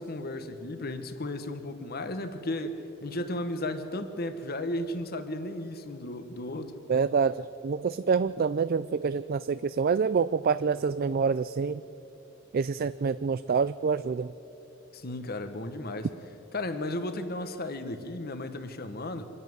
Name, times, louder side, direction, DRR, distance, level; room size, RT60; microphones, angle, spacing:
voice 1, 0.0-6.7 14.9-16.1 16.5-19.3, left 1 dB, 50° left, 9 dB, 1.2 m, -34 dB
voice 2, 6.9-11.8 12.5-14.3, right 5 dB, 45° right, 14 dB, 0.4 m, -27 dB
25.5 x 11.0 x 9.6 m, 2.9 s
head